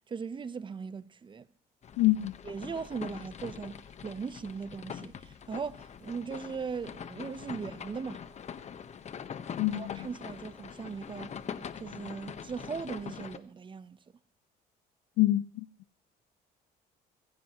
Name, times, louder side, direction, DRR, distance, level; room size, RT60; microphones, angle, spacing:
voice 1, 0.0-1.5 2.4-8.2 9.7-11.4 11.8-14.0, right 5 dB, 30° right, 0.8 m, -39 dB
sound 1, 1.8-13.4, left 7 dB, 40° left, 1.2 m, -43 dB
voice 2, 2.0-2.3 9.6-10.0 15.2-15.6, left 16 dB, 90° left, 0.6 m, -26 dB
23.5 x 16.0 x 3.0 m
cardioid pair, 110°, 17 cm